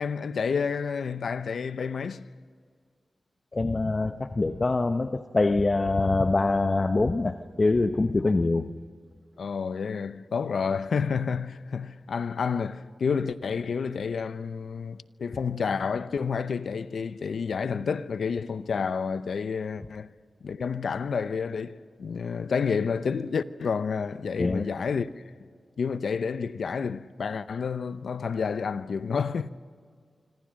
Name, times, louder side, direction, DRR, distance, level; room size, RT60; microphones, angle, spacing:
voice 1, 0.0-2.3 9.4-20.1 20.4-25.2 25.8-29.5, left 5 dB, 80° left, 0.7 m, -29 dB
voice 2, 3.5-8.7 24.4-24.7, left 3 dB, 45° left, 0.9 m, -24 dB
25.5 x 25.5 x 6.5 m
cardioid pair, 45°, 0 cm